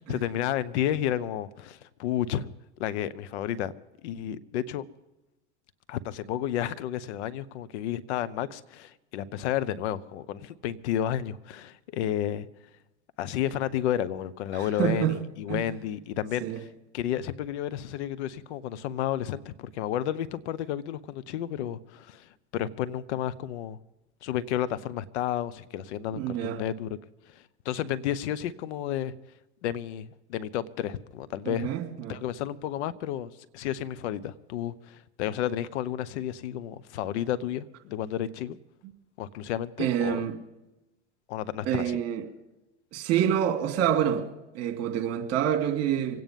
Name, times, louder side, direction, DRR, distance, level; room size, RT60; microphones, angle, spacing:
voice 1, 0.0-2.5 2.8-3.7 4.0-4.9 5.9-12.5 13.2-16.7 16.9-23.8 24.2-26.9 27.3-29.2 29.6-31.7 32.1-38.6 39.2-40.3 41.3-42.0, left 11 dB, 70° left, 16 dB, 1.0 m, -31 dB
voice 2, 14.5-15.1 15.5-15.6 16.4-16.6 26.2-26.6 31.4-32.2 39.8-40.4 41.6-42.2 42.9-44.2 44.5-46.2, right 10 dB, 45° right, 4 dB, 3.0 m, -27 dB
24.5 x 9.4 x 5.3 m, 0.99 s
hypercardioid pair, 115°, 36 cm